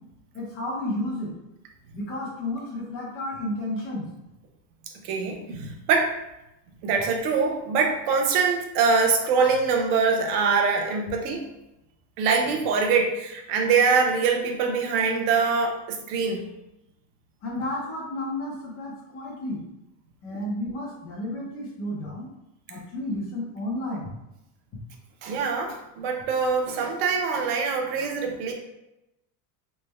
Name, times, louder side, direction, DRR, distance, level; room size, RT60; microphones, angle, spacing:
voice 1, 0.3-1.3 1.9-4.1 17.4-19.6 20.2-22.3 22.7-24.1, left 1 dB, 30° left, -3 dB, 0.7 m, -32 dB
voice 2, 5.0-6.2 6.8-11.5 12.2-16.5 25.2-28.5, right 5 dB, 85° right, 3 dB, 0.8 m, -24 dB
3.3 x 2.1 x 3.2 m, 0.90 s
cardioid pair, 180°, 43 cm